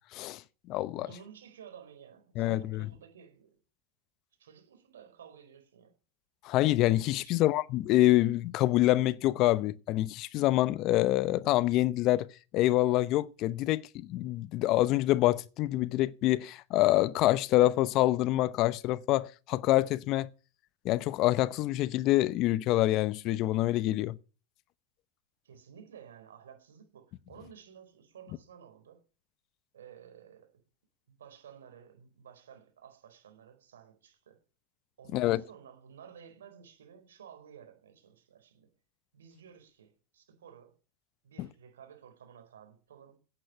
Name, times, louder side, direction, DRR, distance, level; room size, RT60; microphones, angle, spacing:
voice 1, 0.1-0.4 0.7-1.1 2.4-2.9 6.4-12.3 12.5-20.3 20.8-24.2 35.1-35.4 41.4-41.5, left 16 dB, 50° left, 0.8 m, -26 dB
voice 2, 1.0-3.6 4.4-5.9 7.2-7.5 25.4-29.0 29.7-30.5 31.1-34.4 35.0-38.7 39.1-40.7 41.2-43.2, right 8 dB, 90° right, 4.7 m, -53 dB
10.5 x 9.1 x 8.0 m
hypercardioid pair, 110°, 0 cm